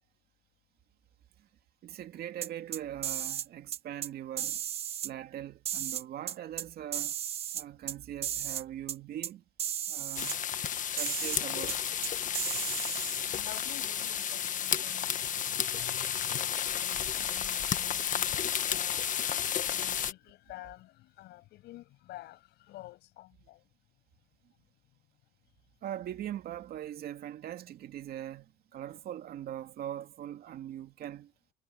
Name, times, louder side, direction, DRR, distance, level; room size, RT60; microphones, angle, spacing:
voice 1, 1.8-4.6 5.0-7.1 7.5-9.4 9.9-10.4 10.9-11.9 25.8-31.3, right 11 dB, 65° right, 2.5 m, -41 dB
sound 1, 2.4-3.5 3.7-4.1 4.4-5.1 5.6-6.6 6.9-7.9 8.2-8.6 8.9-9.0 9.2-9.3 9.6-10.4 11.0-11.4 11.7-11.8 12.0-13.3, right 10 dB, 40° right, 0.4 m, -35 dB
sound 2, 10.2-20.1, left 9 dB, 50° left, 1.5 m, -32 dB
voice 2, 13.2-23.7, left 16 dB, 80° left, 7.8 m, -50 dB
cardioid pair, 110°, 17 cm